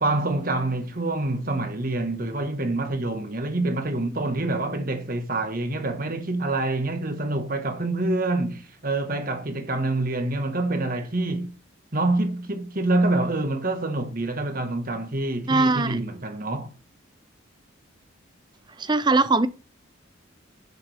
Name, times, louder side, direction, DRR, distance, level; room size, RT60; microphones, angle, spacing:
voice 1, 0.0-11.5 11.9-16.7, right 2 dB, 45° right, 1.5 m, -26 dB
voice 2, 15.5-16.0 18.8-19.5, right 3 dB, 20° right, 0.5 m, -20 dB
11.5 x 7.0 x 3.5 m
head